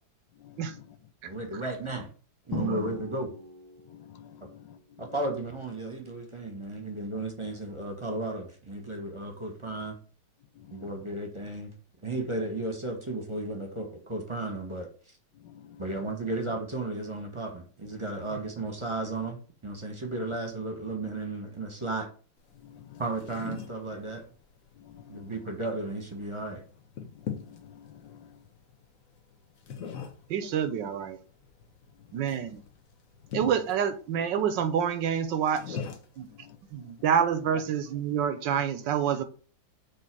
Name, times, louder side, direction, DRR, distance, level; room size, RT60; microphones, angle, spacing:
voice 1, 0.4-1.0 1.3-1.6 3.9-5.1 10.5-11.1 15.3-16.1 19.9-20.0 22.5-23.0 24.8-25.5 27.1-28.4 32.1-32.4 36.2-36.9 37.5-37.6, left 10 dB, 75° left, 1.3 m, -51 dB
voice 2, 1.2-2.1 2.5-3.3 5.0-10.0 10.7-11.7 12.0-14.9 15.8-19.4 19.6-22.1 23.0-24.2 25.1-26.6, right 2 dB, 20° right, 1.1 m, -34 dB
Drum, 2.5-4.2, left 5 dB, 25° left, 0.5 m, -38 dB
sound 1, 22.4-38.2, left 7 dB, 50° left, 1.2 m, -44 dB
voice 3, 30.3-31.2 32.1-32.6 33.3-35.8 36.2-36.3 36.7-39.2, right 8 dB, 75° right, 1.3 m, -27 dB
6.8 x 3.2 x 6.1 m
omnidirectional pair, 2.1 m